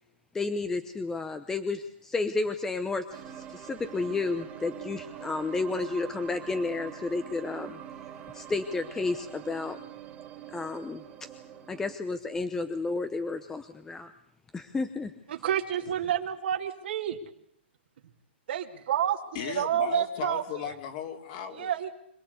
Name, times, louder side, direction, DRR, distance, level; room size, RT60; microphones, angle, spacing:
voice 1, 0.3-7.8 8.3-9.8 10.5-11.3 11.7-14.1 14.5-15.1, left 3 dB, 10° left, 9 dB, 0.9 m, -32 dB
sound 1, 3.1-11.9, right 10 dB, 20° right, 2.6 m, -44 dB
voice 2, 15.3-17.2 18.5-20.4 21.6-21.9, right 10 dB, 65° right, 1 dB, 2.6 m, -29 dB
voice 3, 19.3-21.7, left 9 dB, 40° left, 5 dB, 3.1 m, -36 dB
26.0 x 18.0 x 8.3 m, 0.72 s
hypercardioid pair, 150°, 6 cm